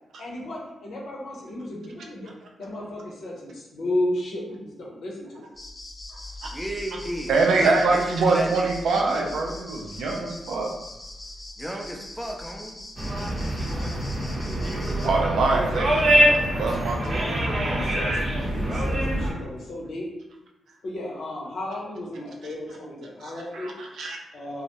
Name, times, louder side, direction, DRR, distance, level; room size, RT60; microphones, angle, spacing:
voice 1, 0.2-2.3 2.6-5.4 8.9-9.3 17.1-20.1 20.8-23.7 24.3-24.6, left 1 dB, 70° left, -3 dB, 0.7 m, -33 dB
sound 1, 5.6-15.1, left 2 dB, 35° left, 0.8 m, -41 dB
voice 2, 6.5-8.7 11.6-12.8, equal, 10° right, 1 dB, 0.5 m, -34 dB
voice 3, 7.3-10.7 15.0-17.5 23.2-24.2, right 3 dB, 75° right, 0 dB, 0.4 m, -24 dB
sound 2, 13.0-19.3, right 1 dB, 45° right, 0.7 m, -24 dB
2.2 x 2.0 x 2.9 m, 0.95 s
hypercardioid pair, 40°, 0 cm